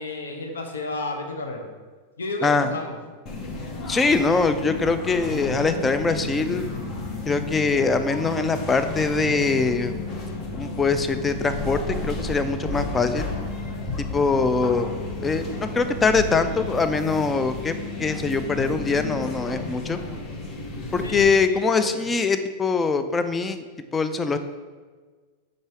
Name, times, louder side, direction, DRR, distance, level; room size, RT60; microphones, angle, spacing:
voice 1, 0.0-1.7 2.2-3.0 21.0-22.1, left 2 dB, 70° left, 3 dB, 0.8 m, -32 dB
sound 1, 3.3-21.3, left 2 dB, 35° left, 0.8 m, -32 dB
voice 2, 3.9-6.7 7.3-9.9 10.5-13.3 14.1-20.0 20.9-23.6 23.9-24.4, left 4 dB, 15° left, 9 dB, 0.4 m, -23 dB
5.4 x 3.9 x 4.6 m, 1.4 s
figure-of-eight pair, 90°, 0 cm